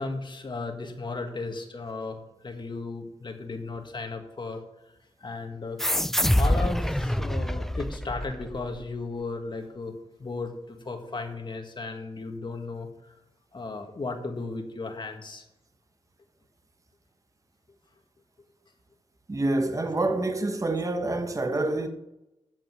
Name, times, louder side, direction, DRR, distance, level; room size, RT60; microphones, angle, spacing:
voice 1, 0.0-4.6 5.2-5.8 6.3-12.9 13.5-15.4, left 3 dB, 45° left, 1.9 m, -35 dB
sound 1, 5.8-8.8, left 1 dB, 5° left, 0.4 m, -26 dB
voice 2, 7.1-7.4 19.3-21.9, right 2 dB, 30° right, 1.2 m, -27 dB
8.5 x 7.2 x 7.5 m
cardioid pair, 60°, 11 cm